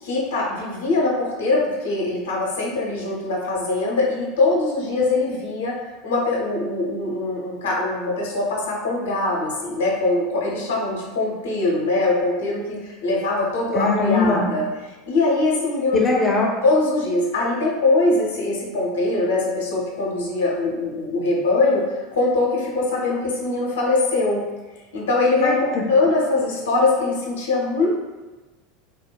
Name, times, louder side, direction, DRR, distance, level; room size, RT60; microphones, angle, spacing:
voice 1, 0.0-14.7 15.1-16.0 16.6-24.4 24.9-25.5 25.9-27.9, left 2 dB, 70° left, -3 dB, 0.6 m, -22 dB
voice 2, 13.7-14.5 15.9-16.5 25.4-25.8, left 3 dB, 15° left, -2 dB, 0.5 m, -20 dB
2.9 x 2.1 x 2.2 m, 1.2 s
figure-of-eight pair, 80°, 0 cm